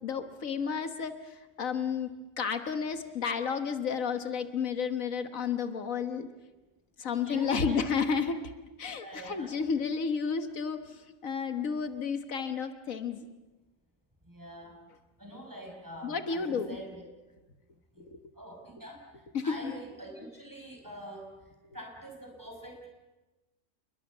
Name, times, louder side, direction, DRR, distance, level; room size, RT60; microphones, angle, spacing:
voice 1, 0.0-2.1 2.4-6.3 7.0-8.4 8.8-13.3 16.0-16.7 18.0-18.2 19.3-19.7, left 6 dB, 80° left, 9 dB, 1.8 m, -32 dB
voice 2, 7.1-7.9 8.9-9.5 14.2-14.8 15.2-17.1 17.9-22.9, right 1 dB, 15° right, 1 dB, 5.6 m, -45 dB
28.5 x 22.0 x 7.3 m, 1.1 s
omnidirectional pair, 1.4 m